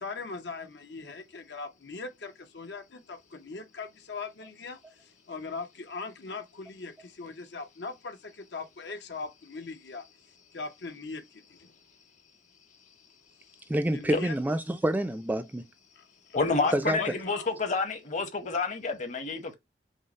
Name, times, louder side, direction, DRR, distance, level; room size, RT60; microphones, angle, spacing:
voice 1, 0.0-4.8 5.3-6.9 7.2-8.2 8.5-10.0 10.5-11.2 13.9-14.3 16.3-17.5, left 4 dB, 75° left, 0.8 m, -39 dB
voice 2, 13.7-15.7 16.7-17.0, right 1 dB, 10° right, 0.3 m, -27 dB
voice 3, 16.3-19.5, left 4 dB, 45° left, 0.9 m, -29 dB
5.4 x 2.0 x 4.0 m
head